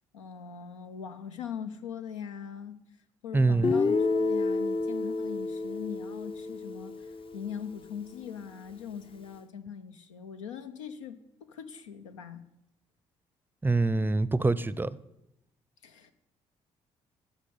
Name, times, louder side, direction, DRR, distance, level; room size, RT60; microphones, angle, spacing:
voice 1, 0.1-2.8 3.2-12.5 15.8-16.1, left 7 dB, 80° left, 0.7 m, -41 dB
voice 2, 3.3-3.7 13.6-15.0, right 3 dB, 15° right, 0.6 m, -25 dB
Guitar, 3.6-7.6, left 3 dB, 35° left, 0.7 m, -29 dB
11.0 x 6.6 x 8.5 m
figure-of-eight pair, 45°, 16 cm